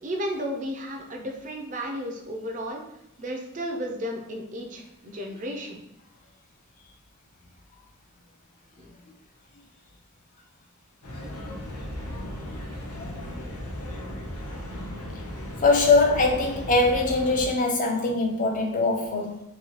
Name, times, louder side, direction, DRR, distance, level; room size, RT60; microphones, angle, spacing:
voice 1, 0.0-2.8 3.2-5.8 8.8-8.9, equal, 35° right, 0.5 m, -33 dB
sound 1, 11.0-17.5, left 1 dB, 90° left, 0.7 m, -36 dB
voice 2, 15.6-19.4, left 3 dB, 35° left, 0.5 m, -22 dB
3.0 x 2.7 x 2.9 m
head